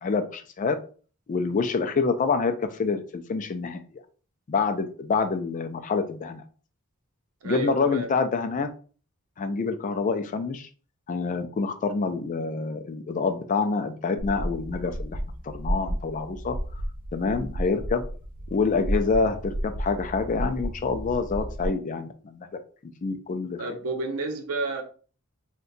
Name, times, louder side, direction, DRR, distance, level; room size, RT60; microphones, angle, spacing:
voice 1, 0.0-0.8 1.3-3.8 4.5-6.4 7.4-8.7 9.4-10.7 11.1-15.2 15.4-16.6 17.1-18.0 18.5-22.5 22.8-23.6, left 4 dB, 35° left, 0.3 m, -27 dB
voice 2, 7.4-8.1 23.6-24.8, right 2 dB, 80° right, 0.7 m, -31 dB
sound 1, 14.2-21.7, equal, 40° right, 0.5 m, -32 dB
2.7 x 2.2 x 3.8 m
head